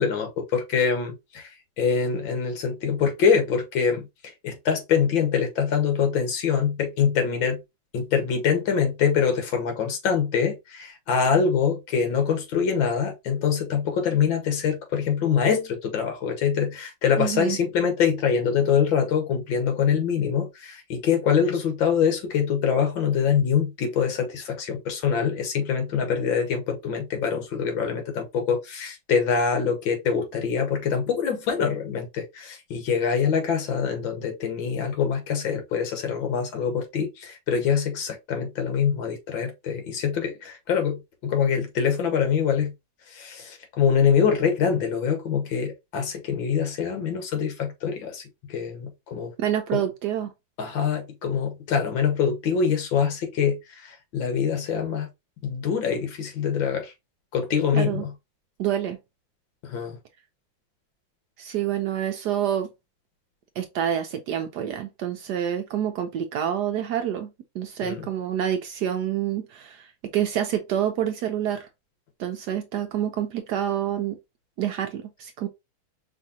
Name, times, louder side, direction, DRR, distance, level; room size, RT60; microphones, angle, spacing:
voice 1, 0.0-1.5 1.8-4.1 4.4-7.6 7.9-42.7 43.1-48.2 48.5-49.3 49.7-49.8 50.6-55.1 55.4-56.9 57.3-58.1 59.7-60.0 67.8-68.0, left 7 dB, 75° left, 1.9 m, -24 dB
voice 2, 17.2-17.6 49.4-50.3 57.7-58.1 58.6-59.0 61.4-62.7 63.6-69.9 70.1-71.7 72.2-74.2 74.6-75.5, right 10 dB, 70° right, 1.0 m, -27 dB
5.4 x 2.7 x 2.7 m
omnidirectional pair, 2.1 m